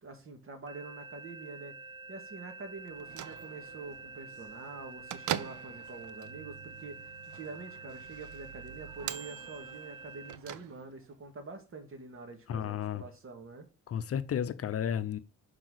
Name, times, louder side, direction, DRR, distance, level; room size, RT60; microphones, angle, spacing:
voice 1, 0.0-1.8 2.1-13.7, right 3 dB, 45° right, 2.3 m, -46 dB
sound 1, 0.7-10.4, right 3 dB, 15° right, 0.3 m, -48 dB
Bell / Microwave oven, 2.9-11.2, right 12 dB, 75° right, 0.7 m, -43 dB
voice 2, 12.5-13.0 13.9-15.2, left 9 dB, 50° left, 0.7 m, -32 dB
6.0 x 4.8 x 6.4 m
cardioid pair, 90°, 30 cm